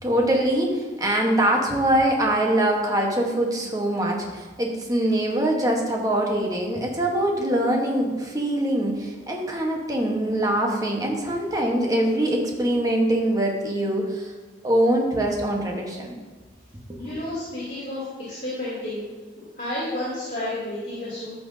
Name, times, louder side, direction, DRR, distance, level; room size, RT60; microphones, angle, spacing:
voice 1, 0.0-14.3 14.6-16.1 16.9-17.0, right 1 dB, 20° right, 0 dB, 1.2 m, -23 dB
voice 2, 17.0-19.0 19.5-21.3, left 1 dB, 45° left, -10 dB, 2.8 m, -31 dB
13.5 x 5.9 x 2.7 m, 1.3 s
head